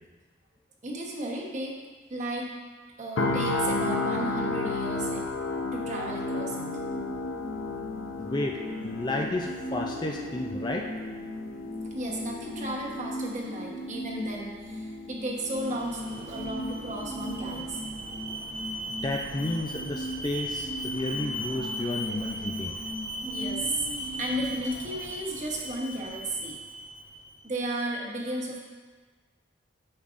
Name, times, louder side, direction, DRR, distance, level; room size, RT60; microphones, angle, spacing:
voice 1, 0.8-1.8 2.1-2.5 3.0-5.2 5.7-6.7 11.8-17.9 23.3-23.9 24.2-26.6 27.4-28.6, right 1 dB, 40° right, -2 dB, 1.1 m, -34 dB
sound 1, 3.2-17.2 17.5-17.7, left 3 dB, 90° left, 0.6 m, -34 dB
sound 2, 6.0-24.5, equal, 10° right, 1.0 m, -39 dB
voice 2, 8.2-10.9 19.0-22.7, left 2 dB, 25° left, 1 dB, 0.4 m, -32 dB
Alarm, 15.3-27.4, equal, 80° right, 1.0 m, -38 dB
8.8 x 6.3 x 2.5 m, 1.4 s
head